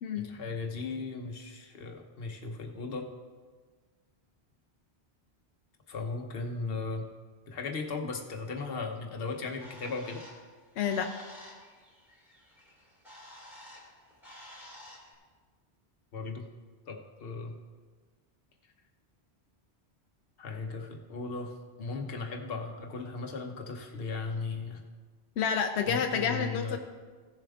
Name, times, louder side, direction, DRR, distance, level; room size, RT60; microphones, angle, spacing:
voice 1, 0.1-3.1 5.9-7.0 7.5-10.2 16.1-16.5 16.9-17.5 20.4-24.8 25.9-26.8, left 3 dB, 65° left, 3 dB, 1.1 m, -37 dB
Bird, 9.2-15.1, left 1 dB, ahead, 2.4 m, -51 dB
voice 2, 10.8-11.1 25.4-26.8, left 7 dB, 90° left, 5 dB, 0.9 m, -29 dB
15.5 x 6.9 x 3.6 m, 1.5 s
omnidirectional pair, 1.1 m